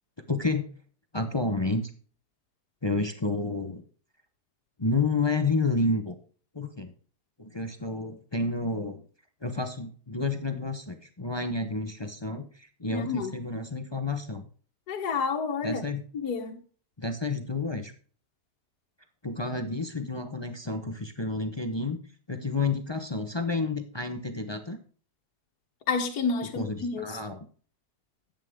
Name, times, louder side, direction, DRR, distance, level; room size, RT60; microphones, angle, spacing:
voice 1, 0.3-0.7 1.1-1.9 2.8-3.8 4.8-6.1 6.5-6.9 7.4-9.1 9.4-14.4 15.6-16.0 17.0-17.9 19.2-22.0 22.3-24.8 26.4-27.4, left 3 dB, 30° left, 0.5 m, -30 dB
voice 2, 12.9-13.3 14.9-15.8 16.1-16.6 25.9-27.2, left 5 dB, 65° left, 1.6 m, -29 dB
11.0 x 8.6 x 3.6 m
omnidirectional pair, 1.9 m